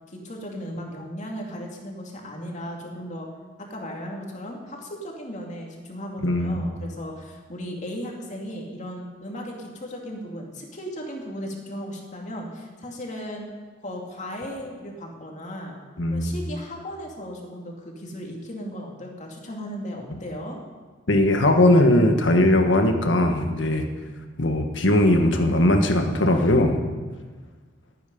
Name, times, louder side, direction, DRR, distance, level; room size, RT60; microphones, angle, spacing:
voice 1, 0.1-3.3 3.7-13.5 13.8-15.7 16.1-20.6, equal, 40° left, 0 dB, 2.6 m, -36 dB
voice 2, 6.2-6.7 16.0-16.3 21.1-23.9 24.4-26.8, left 1 dB, 85° left, 4 dB, 1.6 m, -19 dB
20.0 x 9.4 x 5.5 m, 1.4 s
head